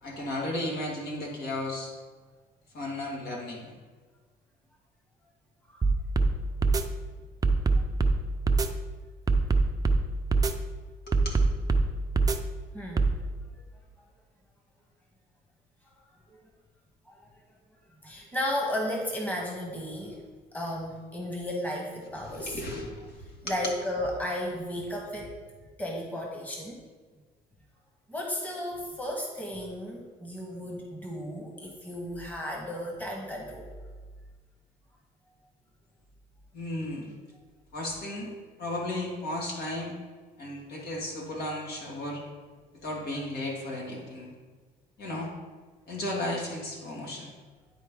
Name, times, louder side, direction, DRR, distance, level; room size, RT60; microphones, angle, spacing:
voice 1, 0.0-1.9 2.7-3.8 11.1-11.3 22.3-23.7 36.5-37.1 37.7-39.9 40.4-42.2 42.8-44.3 45.0-45.3 45.9-47.3, left 1 dB, 65° left, -2 dB, 2.0 m, -34 dB
sound 1, 5.8-6.3 6.6-6.8 7.4-8.2 8.5-8.7 9.3-10.0 10.3-10.5 11.1-11.9 12.2-12.4 13.0-13.1, right 3 dB, 20° right, 0.5 m, -22 dB
voice 2, 12.7-13.3 16.3-16.4 17.1-17.3 18.0-20.2 20.5-22.6 23.4-25.4 25.8-26.8 28.1-33.7, left 1 dB, 10° left, -1 dB, 1.3 m, -34 dB
10.5 x 4.3 x 3.7 m, 1.4 s
cardioid pair, 110°, 17 cm